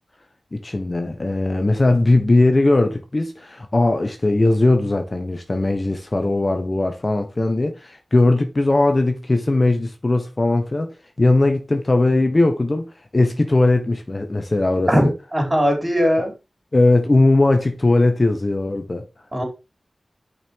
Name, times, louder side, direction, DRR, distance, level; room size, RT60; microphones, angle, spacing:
voice 1, 0.5-10.9 11.2-15.1 16.7-19.1, left 2 dB, 40° left, 1.2 m, -19 dB
voice 2, 15.3-16.3 19.3-19.4, equal, 25° right, 4.3 m, -18 dB
6.3 x 5.6 x 4.6 m
cardioid pair, 50°, 0 cm